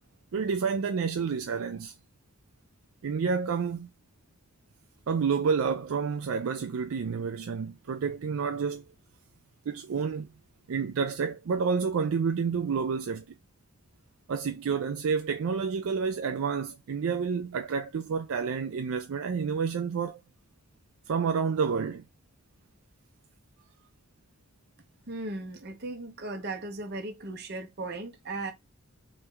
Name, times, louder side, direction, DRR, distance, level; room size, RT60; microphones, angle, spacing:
voice 1, 0.3-1.9 3.0-3.9 5.1-8.8 9.7-10.3 10.7-13.3 14.3-20.2 21.1-22.0, right 5 dB, 70° right, 0.4 m, -29 dB
voice 2, 25.1-28.5, right 2 dB, 45° right, 0.9 m, -37 dB
3.2 x 3.2 x 3.4 m
head